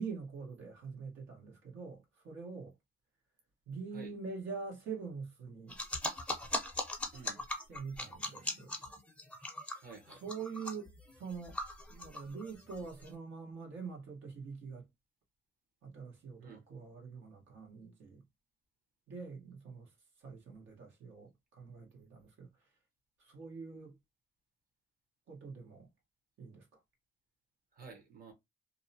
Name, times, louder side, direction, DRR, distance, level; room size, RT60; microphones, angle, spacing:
voice 1, 0.0-2.7 3.7-5.8 7.7-8.8 9.6-11.6 11.9-14.9 15.8-18.2 19.1-19.9 20.2-22.5 23.2-23.9 25.3-25.9 26.4-26.8, right 5 dB, 70° right, 1.0 m, -45 dB
sound 1, 5.7-13.1, left 1 dB, 5° left, 0.6 m, -40 dB
voice 2, 7.1-7.4 9.8-10.2 16.4-16.6 27.7-28.3, right 5 dB, 45° right, 1.0 m, -51 dB
2.6 x 2.1 x 2.7 m
cardioid pair, 90°, 20 cm